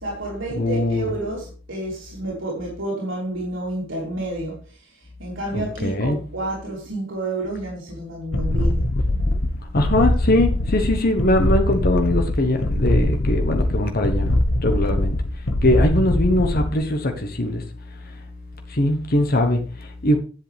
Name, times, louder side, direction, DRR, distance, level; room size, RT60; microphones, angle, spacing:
voice 1, 0.0-8.9, right 2 dB, 75° right, 3.6 m, -30 dB
voice 2, 0.5-1.1 5.5-6.2 9.7-14.3 14.6-17.6 17.9-18.2 18.7-20.2, left 1 dB, 50° left, 1.3 m, -21 dB
sound 1, 8.3-16.8, left 1 dB, 80° left, 1.2 m, -22 dB
11.0 x 7.8 x 3.5 m
head